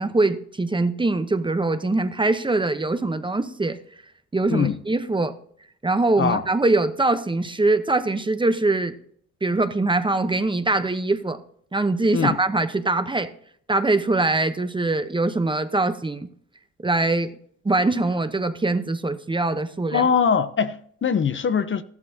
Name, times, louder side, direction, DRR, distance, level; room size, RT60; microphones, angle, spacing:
voice 1, 0.0-3.8 4.3-5.3 5.8-8.9 9.4-11.4 11.7-13.3 13.7-16.3 16.8-17.3 17.6-20.1, right 2 dB, 15° right, 0.9 m, -22 dB
voice 2, 4.5-4.8 6.2-6.4 12.1-12.4 19.9-21.8, left 6 dB, 40° left, 0.8 m, -22 dB
14.0 x 12.0 x 2.8 m
cardioid pair, 90°, 30 cm